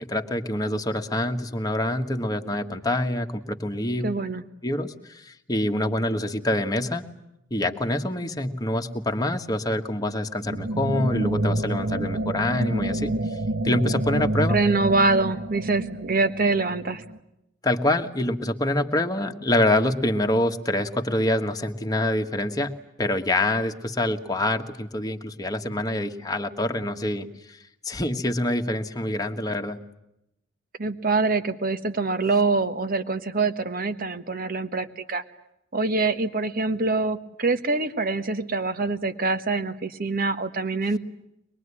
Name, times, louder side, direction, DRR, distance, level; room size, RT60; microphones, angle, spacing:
voice 1, 0.0-4.1 4.6-7.0 7.5-13.4 13.6-14.5 17.6-22.7 23.0-27.6 27.8-29.8, left 1 dB, 20° left, 4 dB, 1.5 m, -26 dB
voice 2, 4.0-4.4 14.5-17.0 30.8-35.2 35.7-41.0, right 3 dB, 45° right, 10 dB, 1.4 m, -24 dB
sound 1, 10.4-17.2, right 1 dB, 80° right, 1.6 m, -28 dB
23.5 x 22.0 x 9.8 m, 0.83 s
head